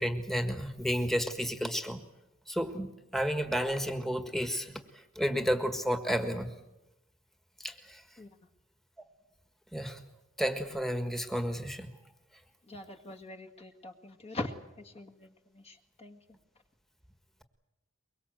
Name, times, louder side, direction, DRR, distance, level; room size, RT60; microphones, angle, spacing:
voice 1, 0.0-2.0 2.5-4.8 5.1-6.5 7.6-8.0 9.7-10.0 10.4-11.9, equal, ahead, 1.6 m, -31 dB
voice 2, 12.6-16.4, left 2 dB, 30° left, 1.7 m, -43 dB
23.0 x 23.0 x 7.9 m
head